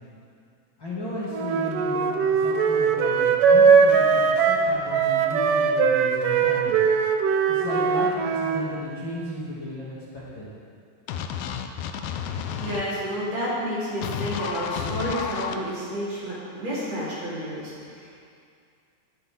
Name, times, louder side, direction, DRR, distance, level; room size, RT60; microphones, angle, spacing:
voice 1, 0.8-6.7 7.5-10.5, left 1 dB, 35° left, -9 dB, 3.1 m, -35 dB
Wind instrument woodwind instrument, 1.3-8.6, right 6 dB, 70° right, 2.3 m, -20 dB
sound 1, 11.1-12.8 14.0-15.5, left 8 dB, 75° left, 2.4 m, -31 dB
voice 2, 12.6-18.2, equal, 45° right, -9 dB, 5.1 m, -30 dB
21.5 x 11.5 x 3.8 m, 2.3 s
omnidirectional pair, 4.2 m